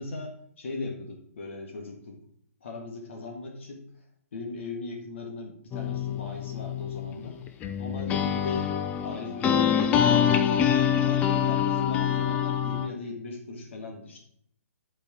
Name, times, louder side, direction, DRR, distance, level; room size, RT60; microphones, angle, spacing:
voice 1, 0.0-2.2 2.6-3.8 4.3-7.4 7.8-8.7 9.0-10.3 10.7-14.2, left 3 dB, 55° left, 1 dB, 1.7 m, -38 dB
sound 1, 5.7-12.9, left 9 dB, 15° left, 0.6 m, -25 dB
9.6 x 4.9 x 6.2 m, 0.66 s
figure-of-eight pair, 125°, 8 cm